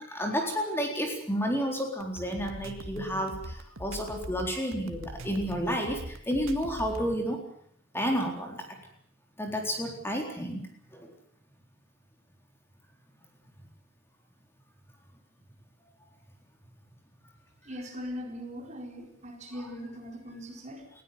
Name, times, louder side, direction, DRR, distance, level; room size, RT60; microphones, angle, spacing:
voice 1, 0.0-7.4 7.9-8.8 9.4-10.7 10.9-11.1, equal, 10° left, 2 dB, 4.0 m, -31 dB
sound 1, 2.0-7.1, right 1 dB, 80° right, 2.0 m, -41 dB
voice 2, 17.6-20.9, equal, 35° right, 3 dB, 4.4 m, -40 dB
20.5 x 16.5 x 9.4 m, 0.68 s
head